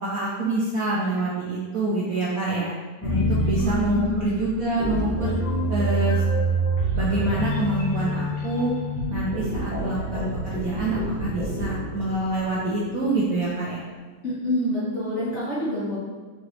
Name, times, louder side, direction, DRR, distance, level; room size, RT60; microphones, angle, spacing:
voice 1, 0.0-2.8 3.0-5.3 5.7-6.2 7.0-8.7 9.1-13.8, right 2 dB, 65° right, -6 dB, 0.9 m, -26 dB
sound 1, 3.0-13.1, right 1 dB, 65° left, 1.7 m, -27 dB
voice 2, 3.6-4.3 14.2-16.0, equal, 45° left, -9 dB, 0.9 m, -27 dB
5.2 x 3.0 x 3.0 m, 1.4 s
omnidirectional pair, 2.3 m